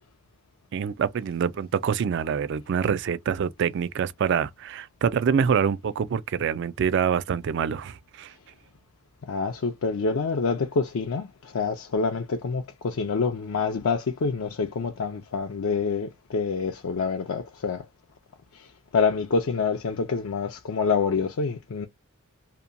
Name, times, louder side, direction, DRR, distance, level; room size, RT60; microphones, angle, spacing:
voice 1, 0.7-8.3, right 7 dB, 55° right, 0.3 m, -26 dB
voice 2, 9.3-17.8 18.5-18.7 18.9-21.9, left 5 dB, 70° left, 0.4 m, -27 dB
2.8 x 2.2 x 2.5 m
head